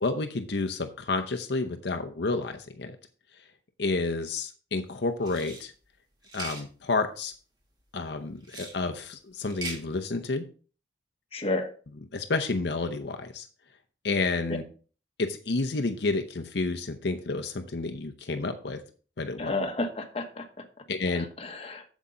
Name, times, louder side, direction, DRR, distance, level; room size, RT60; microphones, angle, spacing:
voice 1, 0.0-3.0 3.8-5.7 6.3-7.3 7.9-10.4 12.1-13.5 14.0-14.6 15.2-18.8 19.2-19.5 20.9-21.2, left 3 dB, 65° left, 5 dB, 0.7 m, -30 dB
sound 1, 5.2-5.6 6.2-6.6 8.4-8.8 9.4-9.8, right 2 dB, 20° right, 1.6 m, -39 dB
voice 2, 11.3-11.7 19.4-20.6 21.1-21.8, left 2 dB, 30° left, 4 dB, 1.1 m, -32 dB
8.2 x 7.2 x 3.8 m, 0.39 s
head